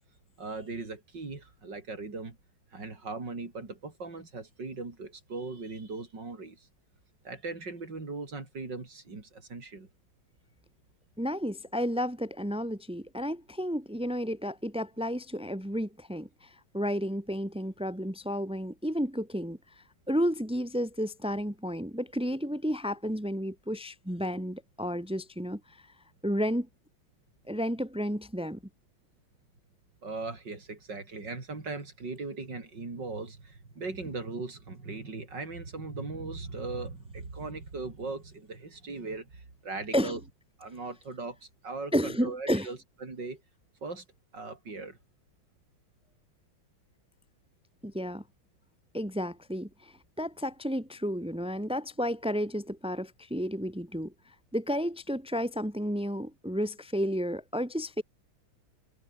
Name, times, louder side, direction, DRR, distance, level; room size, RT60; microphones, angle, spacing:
voice 1, 0.4-2.4 2.7-6.7 7.2-9.9 30.0-40.2 40.6-43.4 43.8-44.0 44.3-45.0, right 3 dB, 60° right, 5.0 m, -39 dB
voice 2, 11.2-25.9 26.2-26.7 27.5-28.6 39.9-40.2 41.9-42.7 47.8-48.2 48.9-58.0, equal, 5° right, 2.9 m, -32 dB
omnidirectional pair, 2.2 m